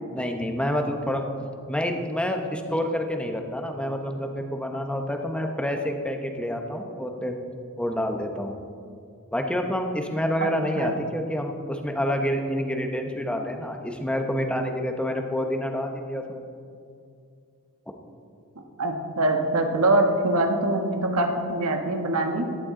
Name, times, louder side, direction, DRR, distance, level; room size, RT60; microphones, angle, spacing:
voice 1, 0.1-1.2 1.7-7.4 7.8-8.6 9.3-16.4, equal, 5° left, 4 dB, 0.9 m, -28 dB
voice 2, 10.4-10.9 18.8-22.5, right 2 dB, 85° right, 4 dB, 1.5 m, -24 dB
16.5 x 11.5 x 3.8 m, 2.4 s
head